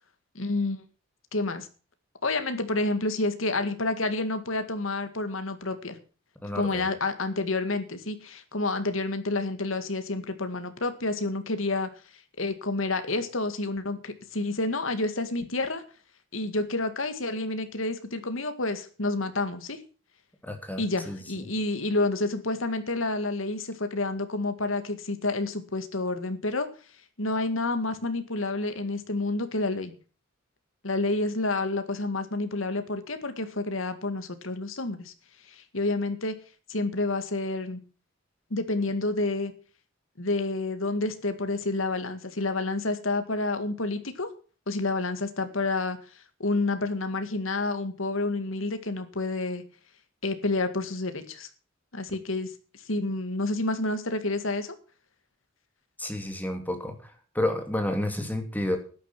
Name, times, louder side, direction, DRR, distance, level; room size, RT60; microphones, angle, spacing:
voice 1, 0.4-0.8 1.3-1.7 2.2-6.0 6.5-11.9 12.4-15.8 16.3-19.8 20.8-26.7 27.2-29.9 30.8-35.1 35.5-36.3 36.7-37.8 38.5-39.5 40.2-44.3 44.7-46.0 46.4-49.6 50.2-51.5 51.9-52.5 52.9-54.7, left 2 dB, 75° left, 9 dB, 2.0 m, -29 dB
voice 2, 6.4-6.9 20.4-21.5 56.0-58.8, left 1 dB, 10° left, 5 dB, 2.7 m, -31 dB
12.5 x 10.0 x 6.0 m, 0.37 s
head